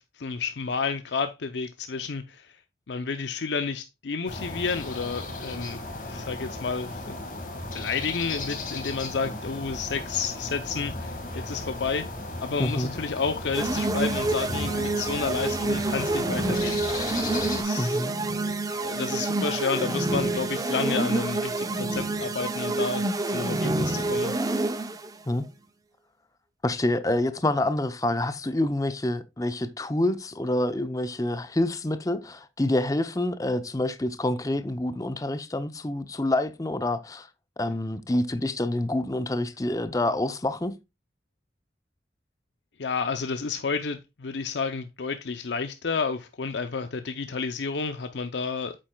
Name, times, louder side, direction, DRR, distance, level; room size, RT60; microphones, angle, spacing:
voice 1, 0.0-2.6 2.9-7.2 7.7-12.1 12.4-16.8 17.6-18.1 18.8-24.3 42.8-48.8, left 5 dB, 75° left, 0.6 m, -31 dB
sound 1, 4.3-17.6, left 2 dB, 45° left, 1.8 m, -36 dB
voice 2, 12.6-12.9 17.8-18.1 25.3-25.5 26.6-37.3 37.6-40.8, left 1 dB, 20° left, 0.6 m, -27 dB
sound 2, 13.5-25.1, right 2 dB, 20° right, 0.6 m, -27 dB
8.7 x 7.5 x 2.3 m
head